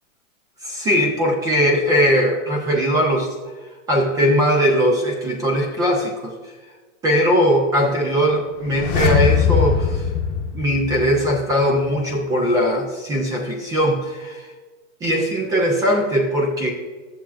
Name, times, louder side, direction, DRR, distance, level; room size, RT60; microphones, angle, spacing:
voice 1, 0.6-3.3 3.9-6.5 7.0-10.1 10.5-14.5 15.0-16.7, equal, 10° right, 2 dB, 0.4 m, -20 dB
sound 1, 8.6-11.5 11.8-11.9, left 7 dB, 30° left, 1.0 m, -21 dB
12.5 x 7.1 x 2.4 m, 1.3 s
hypercardioid pair, 145°, 40 cm